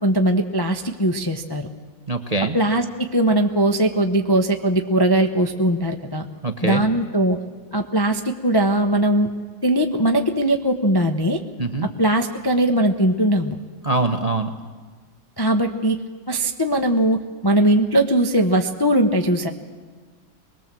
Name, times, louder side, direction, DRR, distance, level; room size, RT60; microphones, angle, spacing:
voice 1, 0.0-1.7 2.5-6.3 6.6-7.4 7.7-9.3 9.6-11.4 12.0-13.6 15.4-16.0 16.3-19.5, right 1 dB, 25° left, 3 dB, 0.5 m, -20 dB
voice 2, 2.1-2.6 6.4-6.8 11.6-11.9 13.8-14.5, right 3 dB, 30° right, 6 dB, 0.6 m, -23 dB
24.0 x 20.5 x 7.6 m, 1.5 s
omnidirectional pair, 2.2 m